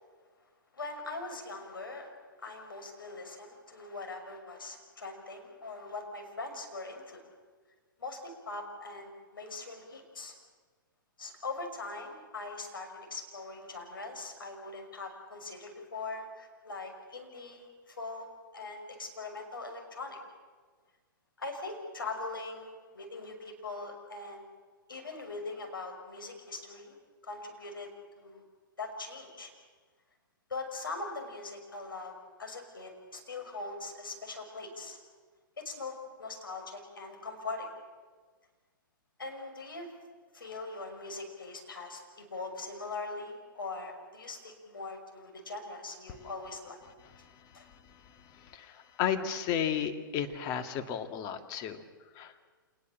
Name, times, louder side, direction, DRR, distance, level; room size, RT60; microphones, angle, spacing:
voice 1, 0.7-2.1 2.4-7.3 8.0-10.3 11.2-18.3 18.5-20.2 21.4-24.5 24.9-27.0 27.2-27.9 28.2-28.4 28.8-29.5 30.5-32.1 32.4-35.0 35.6-37.7 39.2-39.9 40.3-46.8 47.5-47.7, left 3 dB, 75° left, 3 dB, 6.0 m, -41 dB
voice 2, 48.0-51.8 52.1-52.3, left 8 dB, 30° left, 6 dB, 2.2 m, -33 dB
27.0 x 20.5 x 7.5 m, 1.5 s
figure-of-eight pair, 115°, 12 cm